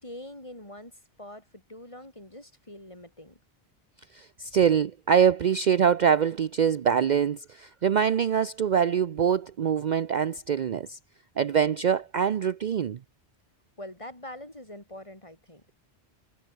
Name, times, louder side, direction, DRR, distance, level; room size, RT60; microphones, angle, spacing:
voice 1, 0.0-0.9 1.2-3.4 13.8-15.7, left 1 dB, 30° left, 4.7 m, -44 dB
voice 2, 4.1-11.0 11.4-13.0, right 7 dB, 50° right, 0.7 m, -24 dB
omnidirectional pair, 1.1 m